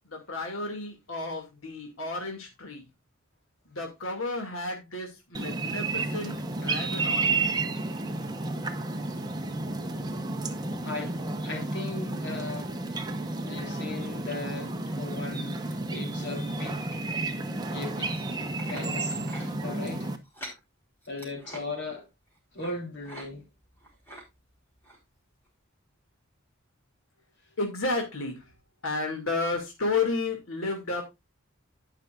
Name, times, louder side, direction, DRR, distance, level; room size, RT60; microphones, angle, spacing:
voice 1, 0.0-2.9 3.7-7.4 27.6-28.5 28.8-31.0, left 3 dB, 90° left, 2.4 m, -32 dB
sound 1, 5.3-20.2, right 3 dB, 20° right, 1.0 m, -31 dB
voice 2, 10.8-12.8 13.2-17.0 17.7-19.3 19.6-20.1 21.1-22.1 22.5-23.4, left 3 dB, 55° left, 3.3 m, -38 dB
sound 2, 18.1-18.8 19.2-19.5 20.2-20.6 21.0-21.6 22.6-22.8 23.0-23.3 23.6-24.2 24.8-25.0 25.5-25.6, right 1 dB, 10° left, 4.3 m, -44 dB
17.5 x 5.8 x 2.5 m
head